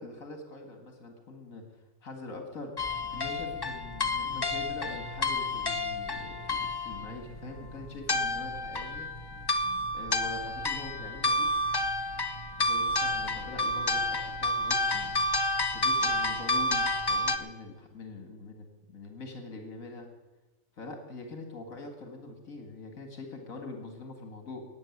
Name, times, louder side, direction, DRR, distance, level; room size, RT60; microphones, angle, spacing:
voice 1, 0.0-2.8 3.1-9.1 9.9-11.5 12.6-15.3 15.7-20.1 20.8-24.7, left 2 dB, 75° left, 4 dB, 2.4 m, -43 dB
sound 1, 2.8-17.4, left 2 dB, 25° left, 0.5 m, -30 dB
14.0 x 9.1 x 9.6 m, 1.2 s
omnidirectional pair, 1.4 m